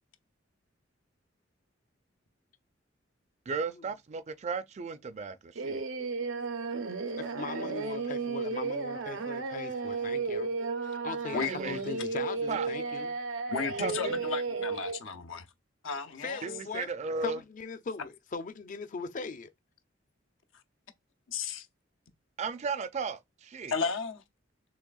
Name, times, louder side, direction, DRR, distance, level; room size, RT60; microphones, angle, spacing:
voice 1, 3.5-5.8 11.4-11.8 12.5-12.7 13.8-14.2 16.4-17.4 22.4-23.7, right 5 dB, 35° right, 0.4 m, -35 dB
Singing, 5.6-15.0, right 4 dB, 90° right, 0.7 m, -34 dB
voice 2, 7.2-10.5 10.8-13.2 16.2-16.9 17.2-19.5, left 4 dB, 45° left, 0.5 m, -40 dB
voice 3, 13.5-15.5 15.8-16.5 21.3-21.7 23.7-24.2, left 5 dB, 85° left, 0.7 m, -33 dB
6.2 x 3.3 x 2.3 m
head